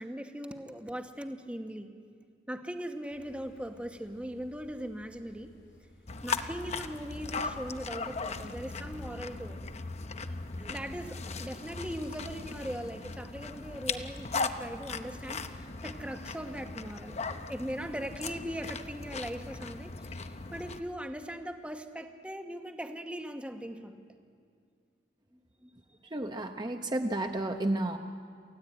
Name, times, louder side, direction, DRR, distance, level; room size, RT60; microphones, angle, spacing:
voice 1, 0.0-1.9 2.5-5.5 6.2-9.6 10.6-17.2 17.5-24.0 25.6-25.7 27.2-27.3, equal, 5° right, 6 dB, 1.2 m, -40 dB
sound 1, 3.1-14.0, left 1 dB, 85° left, 4.4 m, -59 dB
sound 2, 6.1-20.8, left 4 dB, 40° left, 0.9 m, -38 dB
voice 2, 26.0-28.0, right 1 dB, 25° right, 5 dB, 0.9 m, -32 dB
28.5 x 15.0 x 8.9 m, 2.2 s
head